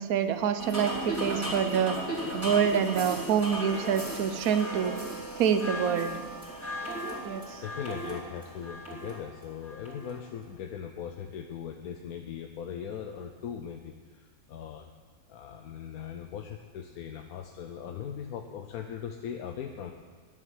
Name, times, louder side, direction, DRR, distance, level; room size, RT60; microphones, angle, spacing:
voice 1, 0.0-2.0 2.3-4.9 5.4-6.2 7.2-7.6, right 8 dB, 80° right, 9 dB, 1.2 m, -26 dB
sound 1, 0.6-10.2, right 1 dB, 10° right, 2.9 m, -36 dB
voice 2, 7.6-14.9 15.3-19.9, left 8 dB, 90° left, 5 dB, 1.2 m, -39 dB
11.0 x 7.3 x 9.1 m, 1.5 s
omnidirectional pair, 1.5 m